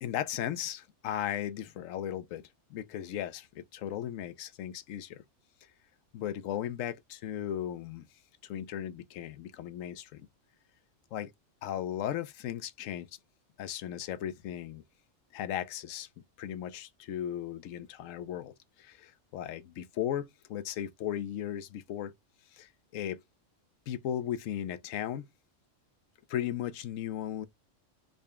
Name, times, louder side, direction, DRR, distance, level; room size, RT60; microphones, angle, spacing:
voice 1, 0.0-5.2 6.1-8.1 8.4-10.3 11.1-11.3 11.6-13.1 13.6-14.8 15.3-16.1 16.4-22.1 22.5-23.2 23.9-25.3 26.3-27.5, left 10 dB, 85° left, 1.0 m, -36 dB
3.9 x 2.1 x 3.5 m
omnidirectional pair, 1.3 m